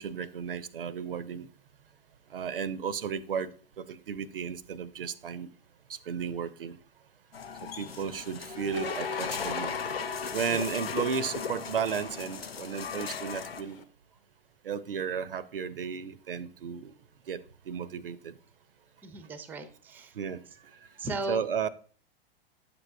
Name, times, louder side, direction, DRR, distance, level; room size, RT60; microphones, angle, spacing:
voice 1, 0.0-1.5 2.3-3.5 3.8-5.5 6.1-6.8 7.6-9.7 10.3-13.8 14.6-16.9 17.3-17.4 17.7-18.3 20.2-20.4 21.3-21.7, right 7 dB, 70° right, 0.5 m, -34 dB
sound 1, 7.3-13.6, left 6 dB, 85° left, 0.5 m, -37 dB
sound 2, 8.7-13.8, left 5 dB, 70° left, 0.9 m, -41 dB
voice 2, 19.0-20.2 21.0-21.4, right 2 dB, 5° right, 0.5 m, -37 dB
9.4 x 6.8 x 2.3 m
figure-of-eight pair, 100°, 29 cm